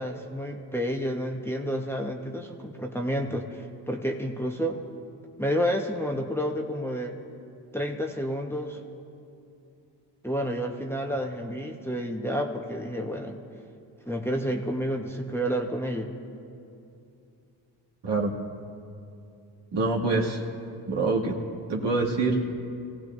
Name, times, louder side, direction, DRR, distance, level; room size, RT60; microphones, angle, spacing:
voice 1, 0.0-4.8 5.4-7.2 7.7-8.8 10.2-13.4 14.1-16.1, equal, 5° left, 1 dB, 1.3 m, -30 dB
voice 2, 19.7-20.4 20.9-21.4 21.7-22.4, right 3 dB, 60° right, -1 dB, 2.2 m, -25 dB
25.5 x 16.5 x 2.7 m, 2.6 s
supercardioid pair, 50°, 48 cm